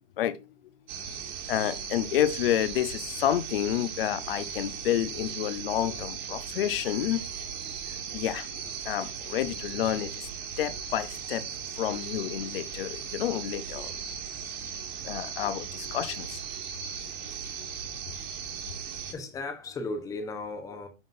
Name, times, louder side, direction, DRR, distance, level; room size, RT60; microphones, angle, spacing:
night sounds, 0.9-19.1, right 7 dB, 40° right, 1.9 m, -38 dB
voice 1, 1.5-7.2 7.6-7.7 8.1-8.5 8.8-10.3 10.6-11.4 11.7-13.9 14.8-16.4 17.2-17.7, left 11 dB, 50° left, 0.7 m, -29 dB
voice 2, 18.5-20.9, left 2 dB, 10° left, 0.8 m, -37 dB
11.0 x 3.8 x 2.6 m
hypercardioid pair, 140°, 36 cm